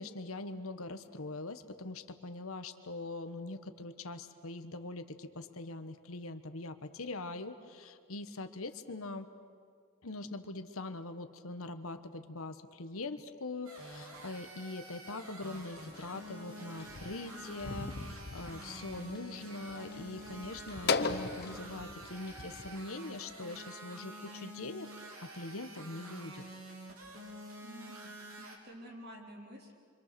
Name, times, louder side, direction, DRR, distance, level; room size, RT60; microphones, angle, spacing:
voice 1, 0.0-9.3 10.0-26.4, left 2 dB, 75° left, 9 dB, 1.2 m, -42 dB
sound 1, 13.7-28.6, right 1 dB, 80° right, 3.5 m, -48 dB
sound 2, 15.8-22.8, left 4 dB, 45° left, 0.8 m, -39 dB
voice 2, 27.6-29.8, equal, 45° right, -1 dB, 3.9 m, -50 dB
27.0 x 25.5 x 6.8 m, 2.1 s
head